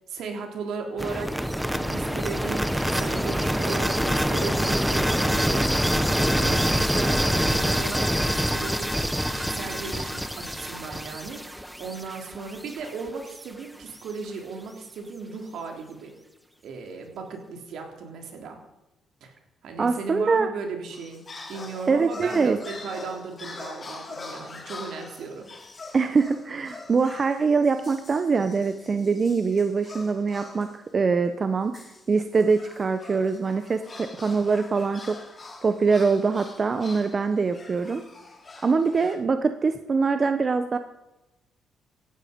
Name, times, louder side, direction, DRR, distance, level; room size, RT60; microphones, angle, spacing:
voice 1, 0.1-1.4 1.8-5.7 6.4-9.0 9.3-16.1 16.6-18.6 19.2-19.3 19.6-25.5, right 4 dB, 75° right, 3 dB, 3.5 m, -36 dB
sound 1, 1.0-12.9, equal, ahead, 1.0 m, -25 dB
voice 2, 19.8-20.5 21.9-22.6 25.9-30.7 30.9-35.2 35.6-38.0 38.6-40.8, right 4 dB, 40° right, 9 dB, 0.9 m, -23 dB
sound 2, 20.9-30.8 31.7-39.2, left 3 dB, 35° left, 3.1 m, -43 dB
16.5 x 12.5 x 5.3 m, 0.97 s
cardioid pair, 90°, 0 cm